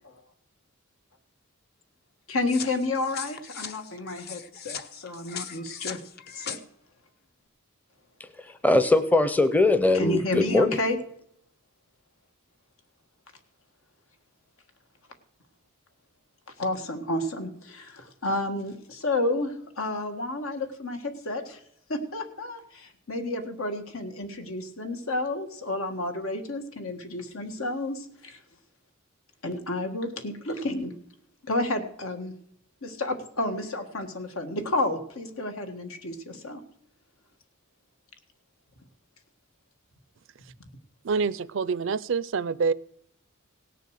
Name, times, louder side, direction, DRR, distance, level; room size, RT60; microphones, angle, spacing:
voice 1, 2.3-6.0 6.3-6.6 10.0-11.0 16.6-21.6 21.9-28.4 29.4-30.9 31.4-32.3 32.8-36.6, left 2 dB, 80° left, 6 dB, 1.7 m, -31 dB
sound 1, 2.5-6.6, left 7 dB, 50° left, 0.8 m, -39 dB
voice 2, 8.2-10.8, left 2 dB, 10° left, 11 dB, 0.6 m, -22 dB
voice 3, 41.0-42.7, right 5 dB, 65° right, 19 dB, 0.4 m, -26 dB
17.5 x 6.7 x 6.4 m, 0.73 s
head